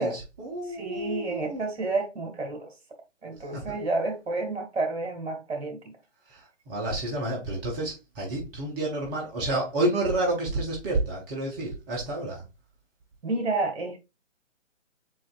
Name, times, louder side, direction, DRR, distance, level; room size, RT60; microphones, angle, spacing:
voice 1, 0.0-1.6 3.5-3.8 6.3-12.4, right 2 dB, 15° right, 0.8 m, -30 dB
voice 2, 0.6-2.7 3.2-6.0 13.2-14.0, right 3 dB, 60° right, 1.8 m, -30 dB
7.5 x 2.5 x 2.4 m
figure-of-eight pair, 140°, 36 cm